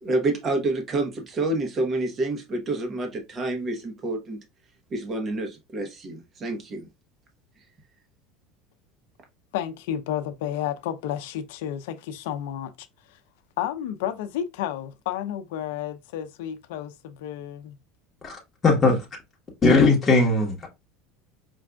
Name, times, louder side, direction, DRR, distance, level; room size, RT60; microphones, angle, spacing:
voice 1, 0.0-4.4 4.9-6.9, right 2 dB, 30° right, 0.9 m, -28 dB
voice 2, 9.5-13.2 13.6-17.8, left 10 dB, 85° left, 0.5 m, -31 dB
voice 3, 18.2-19.1 19.6-20.7, left 3 dB, 20° left, 1.1 m, -19 dB
5.1 x 2.4 x 2.3 m
supercardioid pair, 140°, 0 cm